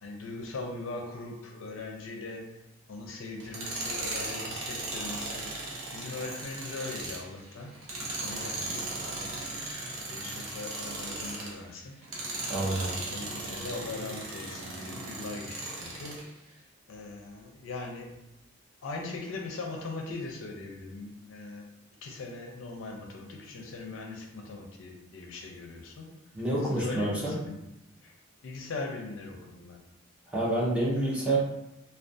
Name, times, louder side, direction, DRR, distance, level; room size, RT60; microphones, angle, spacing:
voice 1, 0.0-2.5 2.9-5.5 5.9-7.7 8.0-9.5 10.1-12.0 12.9-16.2 16.9-18.2 18.8-21.7 22.0-26.1 26.6-27.6 28.0-28.1 28.4-29.8 31.0-31.3, left 3 dB, 70° left, 2 dB, 0.4 m, -40 dB
Tools, 3.4-11.6 12.0-16.3, right 2 dB, 75° right, 0.6 m, -37 dB
voice 2, 12.5-13.0 26.3-27.4 30.3-31.4, right 1 dB, 5° right, -7 dB, 0.5 m, -28 dB
2.3 x 2.2 x 2.5 m, 0.86 s
head